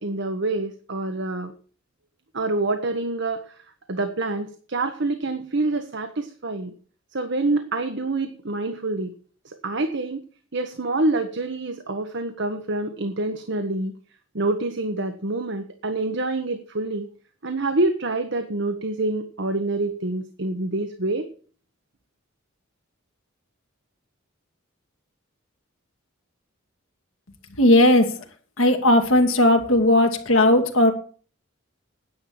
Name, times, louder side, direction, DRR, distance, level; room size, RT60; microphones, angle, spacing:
voice 1, 0.0-1.5 2.3-3.6 3.9-6.7 7.1-9.1 9.4-10.2 10.5-13.9 14.3-17.1 17.4-21.3, right 2 dB, 60° right, 7 dB, 1.2 m, -26 dB
voice 2, 27.6-28.1 28.6-30.9, left 1 dB, 85° left, 4 dB, 2.4 m, -17 dB
10.5 x 8.7 x 7.7 m, 0.43 s
head